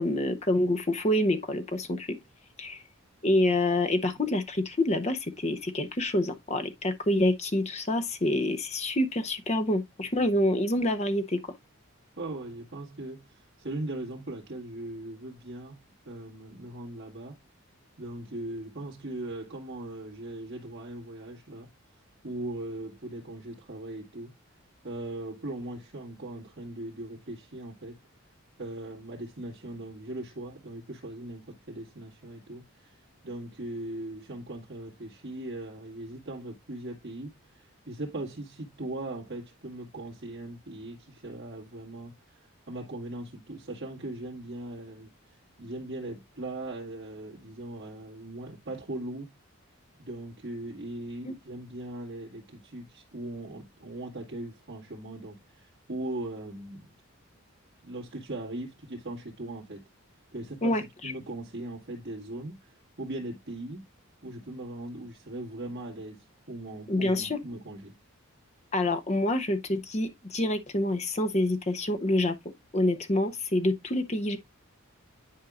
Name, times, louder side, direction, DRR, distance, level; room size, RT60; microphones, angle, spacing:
voice 1, 0.0-2.2 2.6-2.8 3.2-11.4 51.2-51.3 60.6-60.8 66.9-67.4 68.7-74.4, left 1 dB, 30° left, 0.7 m, -27 dB
voice 2, 12.2-17.4 18.0-21.7 22.2-24.3 24.8-28.0 28.6-49.3 50.0-56.9 57.8-59.8 60.3-63.9 64.2-67.9, right 1 dB, 50° right, 2.0 m, -39 dB
10.5 x 4.6 x 2.4 m
head